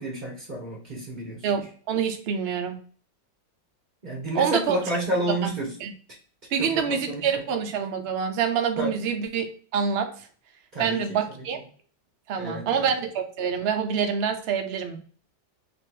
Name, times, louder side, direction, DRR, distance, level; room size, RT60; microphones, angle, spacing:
voice 1, 0.0-1.4 4.0-5.7 6.6-7.3 8.8-8.9 10.7-11.2 12.3-12.9, right 1 dB, 35° right, -3 dB, 0.7 m, -30 dB
voice 2, 1.4-2.8 4.3-4.8 5.3-5.4 5.8-5.9 6.5-9.5 9.7-10.1 10.8-11.6 12.3-15.0, right 7 dB, 85° right, 5 dB, 0.5 m, -26 dB
3.5 x 3.0 x 4.5 m, 0.43 s
omnidirectional pair, 2.0 m